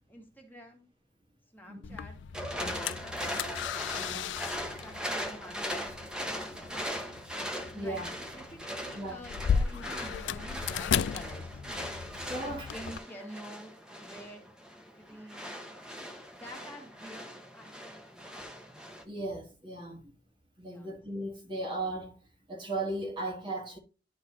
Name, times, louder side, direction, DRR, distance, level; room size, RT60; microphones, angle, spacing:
voice 1, 0.1-0.9 1.5-2.2 2.5-3.2 4.7-5.7 7.7-8.0 8.3-11.6 12.4-14.4 14.8-15.5 16.3-18.6 20.6-20.9, equal, 10° left, 1.5 m, -48 dB
sound 1, 1.8-13.0, left 7 dB, 80° left, 0.3 m, -36 dB
sound 2, 2.3-19.0, equal, 5° right, 1.0 m, -40 dB
voice 2, 3.9-4.4 7.7-8.1 8.9-9.2 11.8-11.9 12.2-12.7 19.0-20.1 20.6-22.2 22.5-23.8, right 2 dB, 25° right, 1.3 m, -37 dB
11.5 x 3.9 x 2.8 m
head